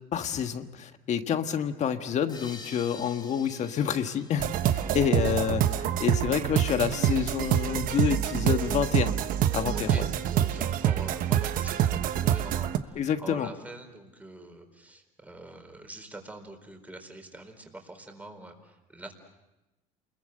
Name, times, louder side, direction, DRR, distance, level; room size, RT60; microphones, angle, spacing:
voice 1, 0.1-9.1 9.5-10.0 12.9-13.5, left 8 dB, 45° left, 8 dB, 1.5 m, -28 dB
sound 1, 2.3-5.6, left 3 dB, 25° left, 3.0 m, -48 dB
sound 2, 4.4-12.8, right 11 dB, 60° right, 1.2 m, -26 dB
voice 2, 9.7-19.1, right 2 dB, 10° right, 5 dB, 4.3 m, -45 dB
29.0 x 22.0 x 6.7 m, 0.99 s
cardioid pair, 110°, 16 cm